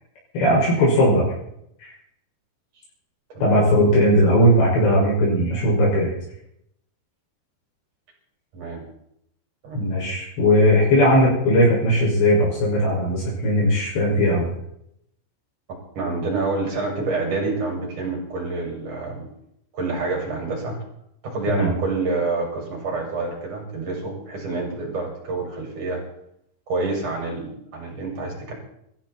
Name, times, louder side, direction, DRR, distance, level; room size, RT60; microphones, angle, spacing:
voice 1, 0.3-1.2 1.8-1.9 3.4-6.1 9.7-14.5 21.5-21.7, equal, 65° left, -5 dB, 8.5 m, -18 dB
voice 2, 15.9-19.3 19.7-20.8 21.2-26.0 26.7-28.5, right 3 dB, 40° right, -1 dB, 7.9 m, -27 dB
21.5 x 15.0 x 4.4 m, 0.74 s
omnidirectional pair, 5.4 m